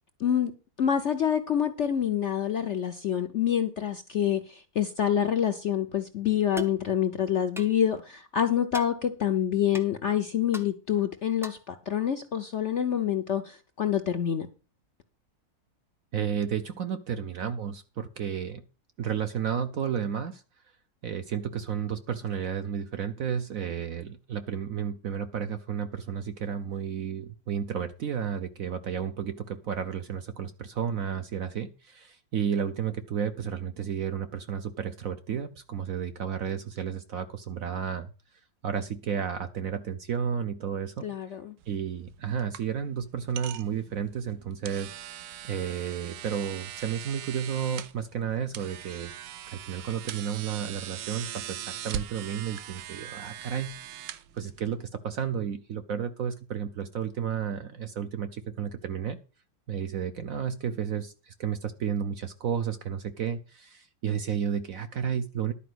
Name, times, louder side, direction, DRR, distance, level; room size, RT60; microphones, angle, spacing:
voice 1, 0.2-14.5 41.0-41.6, left 9 dB, 55° left, 8 dB, 0.8 m, -27 dB
sound 1, 6.6-6.8 7.6-7.8 8.7-8.9 9.7-9.9 10.5-10.7 11.4-11.7, right 1 dB, 5° right, 0.4 m, -38 dB
voice 2, 16.1-18.6 19.0-20.4 21.0-38.1 38.6-41.1 41.7-44.9 45.4-49.1 49.4-59.2 59.7-65.5, right 8 dB, 60° right, 10 dB, 1.0 m, -32 dB
sound 2, 41.6-54.9, right 10 dB, 75° right, 1.3 m, -41 dB
11.5 x 4.9 x 7.8 m, 0.34 s
omnidirectional pair, 2.0 m